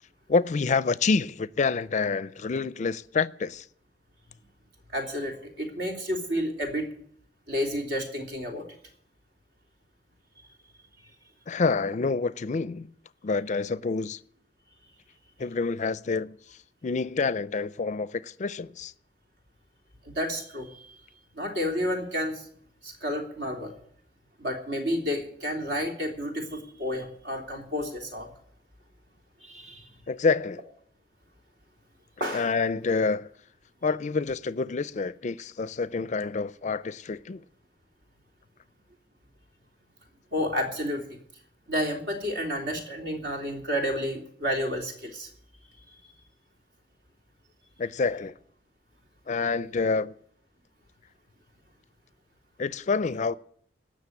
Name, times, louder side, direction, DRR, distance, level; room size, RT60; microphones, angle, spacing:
voice 1, 0.3-3.7 11.5-12.9 13.2-14.2 15.4-16.4 16.8-18.9 30.1-30.6 32.3-33.3 33.8-37.4 47.8-48.3 49.3-50.1 52.6-53.3, left 4 dB, 45° left, 0.4 m, -27 dB
voice 2, 4.9-6.9 7.5-8.6 20.0-20.7 21.3-22.5 22.8-23.7 24.4-28.3 29.4-29.9 32.2-32.5 40.3-41.2 41.7-45.3, equal, 70° right, 3.1 m, -30 dB
17.5 x 6.5 x 8.5 m
head